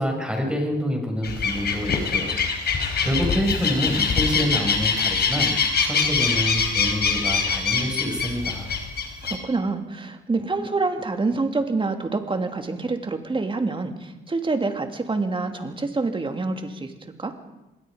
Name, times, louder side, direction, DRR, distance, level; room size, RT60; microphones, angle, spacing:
voice 1, 0.0-2.3 2.6-5.5 5.8-8.7, equal, 5° right, 2 dB, 6.8 m, -27 dB
sound 1, 1.2-9.4, left 5 dB, 55° left, 4.4 m, -24 dB
voice 2, 9.2-16.9 17.2-17.3, right 3 dB, 25° right, 6 dB, 2.8 m, -26 dB
25.5 x 21.5 x 5.2 m, 0.98 s
cardioid pair, 90°, 20 cm